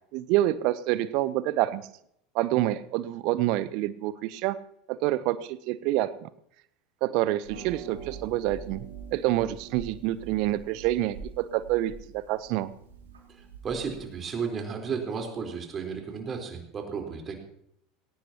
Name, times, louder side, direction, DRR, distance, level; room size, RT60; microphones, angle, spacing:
voice 1, 0.1-1.9 2.3-4.6 4.9-6.3 7.0-8.8 9.1-12.7, right 15 dB, 55° right, 17 dB, 0.7 m, -27 dB
Harp, 7.4-14.2, right 5 dB, 75° right, 3.8 m, -45 dB
voice 2, 13.3-17.3, right 6 dB, 30° right, 3 dB, 4.1 m, -33 dB
20.5 x 17.5 x 2.9 m, 0.72 s
figure-of-eight pair, 75°, 0 cm